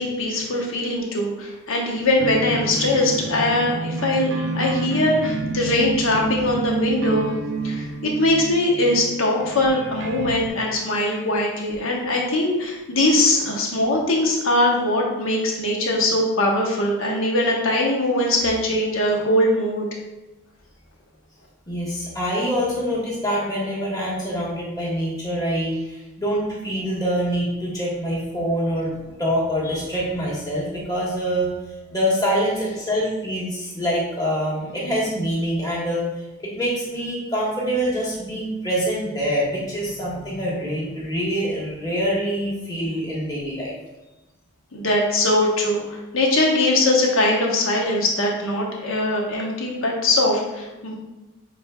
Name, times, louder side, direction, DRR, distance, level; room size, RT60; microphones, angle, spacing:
voice 1, 0.0-7.3 7.6-19.9 44.7-50.9, left 1 dB, 75° left, -1 dB, 1.0 m, -21 dB
sound 1, 2.2-10.5, right 3 dB, 60° right, 0.4 m, -29 dB
voice 2, 21.7-31.5 31.9-36.0 36.4-43.7, equal, 20° left, -6 dB, 1.3 m, -25 dB
6.3 x 3.3 x 2.3 m, 1.0 s
head